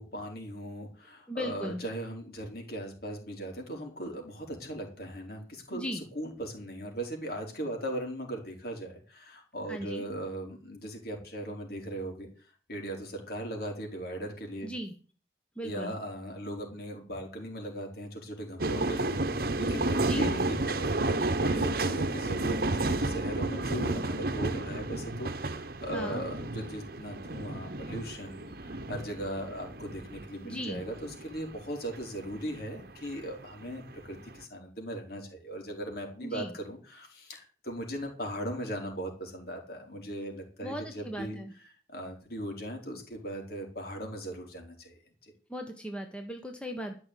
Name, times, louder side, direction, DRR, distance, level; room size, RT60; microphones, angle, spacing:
voice 1, 0.0-12.3 12.7-14.7 15.6-41.4 41.9-45.3, right 1 dB, 55° left, 2 dB, 4.7 m, -38 dB
voice 2, 1.3-1.8 5.7-6.0 9.7-10.1 14.6-14.9 15.6-15.9 20.0-20.3 25.9-26.2 30.4-30.8 36.2-36.5 40.6-41.5 45.5-46.9, equal, 5° left, 4 dB, 1.2 m, -37 dB
sound 1, 18.6-32.6 33.0-34.4, right 2 dB, 55° right, 1.0 m, -31 dB
13.5 x 6.2 x 8.4 m, 0.40 s
head